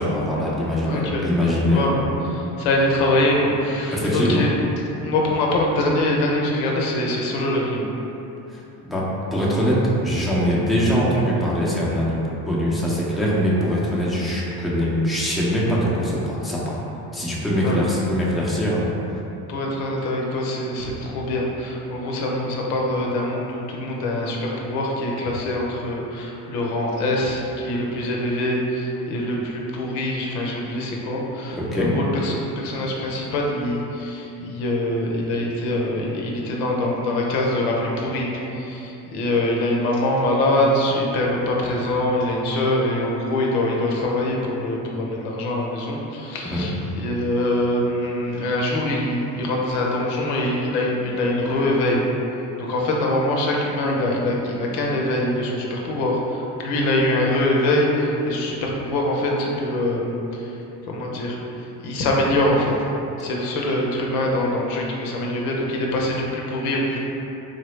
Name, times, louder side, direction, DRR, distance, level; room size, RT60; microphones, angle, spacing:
voice 1, 0.0-2.0 3.9-4.5 8.5-8.6 8.9-16.8 17.1-18.9 31.6-31.9 46.5-46.7, equal, ahead, -7 dB, 0.5 m, -22 dB
voice 2, 0.8-1.2 1.6-2.0 2.3-4.5 5.0-7.9 17.5-17.8 19.5-52.1 52.6-62.7 63.2-67.0, left 1 dB, 90° left, -2 dB, 0.7 m, -24 dB
3.9 x 2.0 x 3.1 m, 3.0 s
supercardioid pair, 90°, 42 cm